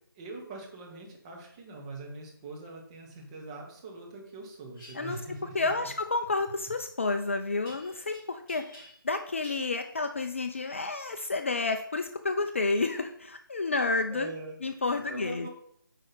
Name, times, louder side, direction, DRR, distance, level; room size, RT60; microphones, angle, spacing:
voice 1, 0.1-5.7 14.1-14.5 14.9-15.5, right 3 dB, 15° right, -1 dB, 1.2 m, -42 dB
sound 1, 4.7-5.0 7.7-8.2 8.5-9.1 9.4-9.7, left 1 dB, 15° left, 2.9 m, -50 dB
voice 2, 5.5-14.3 14.6-15.5, left 3 dB, 35° left, 7 dB, 0.4 m, -30 dB
8.9 x 4.9 x 4.1 m, 0.69 s
figure-of-eight pair, 155°, 12 cm